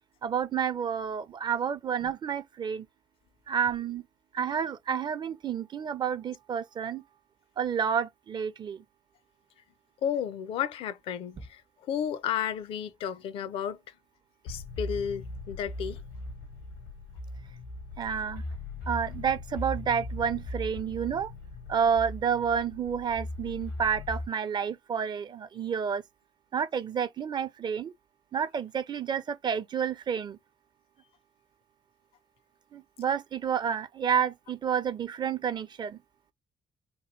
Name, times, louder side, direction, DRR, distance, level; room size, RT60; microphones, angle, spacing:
voice 1, 0.2-2.8 3.5-4.0 4.3-7.0 7.6-8.8 18.0-18.4 18.9-21.3 21.7-26.0 26.5-27.9 28.3-30.4 32.7-36.0, right 7 dB, 45° right, 0.6 m, -30 dB
voice 2, 10.0-11.6 11.9-13.8 14.4-16.0, left 9 dB, 65° left, 0.5 m, -32 dB
sound 1, 14.5-24.3, left 2 dB, 85° left, 0.9 m, -39 dB
3.0 x 2.2 x 3.0 m
hypercardioid pair, 45°, 10 cm